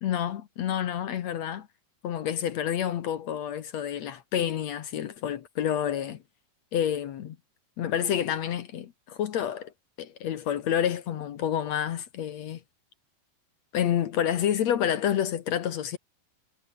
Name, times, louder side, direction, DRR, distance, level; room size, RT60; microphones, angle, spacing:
voice 1, 0.0-1.7 2.0-6.2 6.7-7.4 7.8-9.7 10.0-12.6 13.7-16.0, left 10 dB, 65° left, 1.8 m, -29 dB
omnidirectional pair, 4.5 m